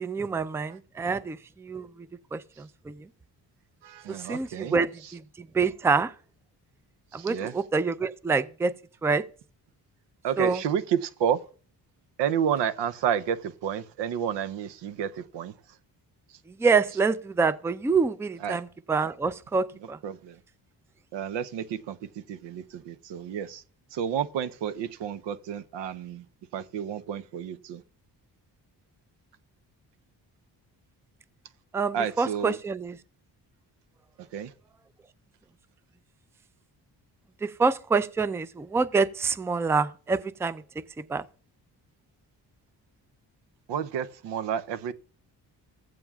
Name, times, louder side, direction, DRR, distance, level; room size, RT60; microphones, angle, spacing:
voice 1, 0.0-1.9 2.3-3.1 4.2-5.2 5.5-6.1 7.1-8.7 9.0-9.2 10.4-10.6 16.6-20.0 31.7-33.0 37.4-40.6 41.1-41.2, right 4 dB, 5° right, 0.3 m, -26 dB
voice 2, 3.8-4.8 7.2-7.5 10.2-11.4 12.2-15.5 18.4-18.6 20.0-20.4 21.1-22.0 22.3-23.6 23.9-26.2 26.5-27.8 31.9-32.6 34.3-34.5 43.7-44.9, right 8 dB, 85° right, 0.6 m, -30 dB
15.0 x 8.7 x 2.3 m
cardioid pair, 70°, 42 cm